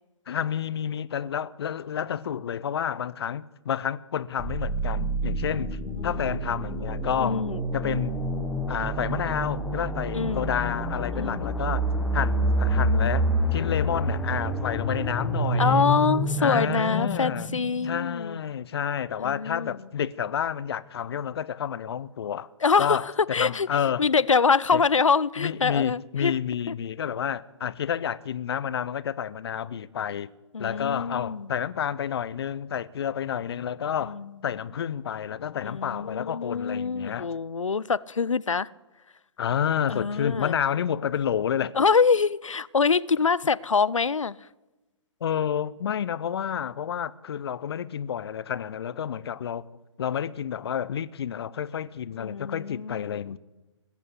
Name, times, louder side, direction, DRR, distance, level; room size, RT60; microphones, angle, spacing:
voice 1, 0.3-7.5 7.7-8.2 8.7-11.8 12.1-15.8 16.4-17.5 17.8-22.5 22.8-24.0 24.7-24.8 25.4-30.3 30.6-34.2 34.4-37.3 39.4-41.7 45.2-49.6 50.0-53.4, left 8 dB, 55° left, 0.7 m, -30 dB
sound 1, 4.4-18.2, right 1 dB, ahead, 1.4 m, -28 dB
voice 2, 5.5-6.2 7.2-7.7 10.1-10.5 11.1-11.5 15.6-18.4 19.2-19.8 22.6-23.7 24.0-26.4 26.7-26.8 30.5-31.5 34.0-34.3 35.6-38.7 39.9-40.6 41.8-44.4 52.2-53.3, left 5 dB, 85° left, 0.5 m, -25 dB
20.0 x 8.4 x 8.3 m
figure-of-eight pair, 130°, 16 cm